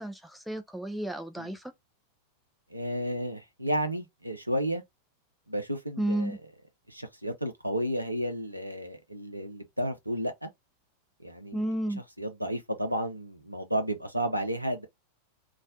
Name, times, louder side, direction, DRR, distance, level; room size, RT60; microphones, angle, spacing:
voice 1, 0.0-1.7 6.0-6.4 11.5-12.0, right 1 dB, ahead, 0.3 m, -32 dB
voice 2, 2.7-4.8 5.5-6.4 6.9-10.5 11.2-11.6 12.2-14.9, equal, 90° right, 0.6 m, -32 dB
2.4 x 2.1 x 2.5 m
figure-of-eight pair, 90°, 0 cm